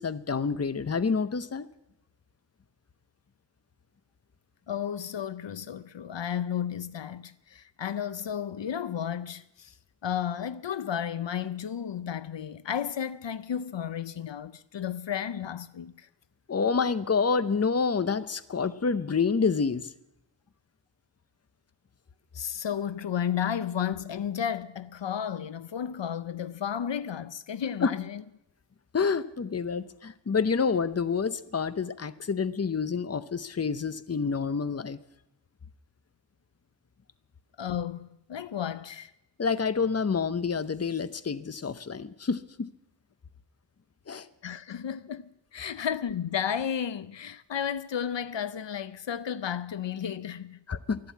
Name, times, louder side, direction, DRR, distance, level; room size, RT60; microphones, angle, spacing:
voice 1, 0.0-1.7 16.5-19.9 27.8-27.9 28.9-35.0 39.4-42.7 44.1-44.3 50.7-51.0, left 5 dB, 35° left, 0.7 m, -28 dB
voice 2, 4.7-9.8 10.0-16.1 22.3-28.2 37.6-39.1 44.4-50.6, left 8 dB, 80° left, 0.6 m, -33 dB
12.0 x 11.5 x 8.4 m
wide cardioid pair, 60°, 44 cm